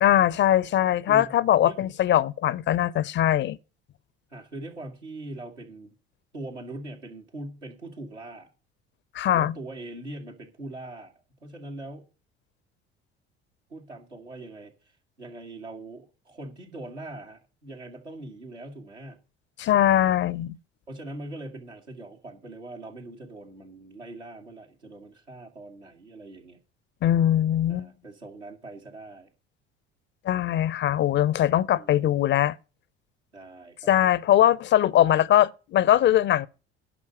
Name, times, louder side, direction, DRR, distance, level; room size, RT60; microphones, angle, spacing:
voice 1, 0.0-3.6 9.1-9.5 19.6-20.6 27.0-27.9 30.3-32.6 33.9-36.5, left 12 dB, 35° left, 0.5 m, -21 dB
voice 2, 1.1-1.9 4.3-5.9 6.3-8.5 9.3-11.1 11.4-12.1 13.7-19.2 20.9-26.6 27.7-29.3 31.7-32.1 33.3-33.9, right 2 dB, 85° right, 1.9 m, -41 dB
11.0 x 5.5 x 7.6 m
figure-of-eight pair, 55°, 33 cm